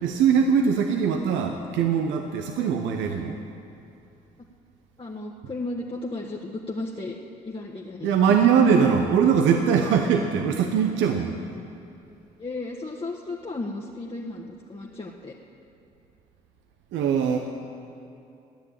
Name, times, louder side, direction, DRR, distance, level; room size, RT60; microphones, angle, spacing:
voice 1, 0.0-3.4 8.0-11.3 16.9-17.4, right 7 dB, 70° right, 4 dB, 1.0 m, -21 dB
voice 2, 5.0-7.1 7.4-8.1 12.4-15.3, left 2 dB, 25° left, -2 dB, 1.7 m, -34 dB
13.5 x 9.8 x 8.9 m, 2.7 s
hypercardioid pair, 45°, 20 cm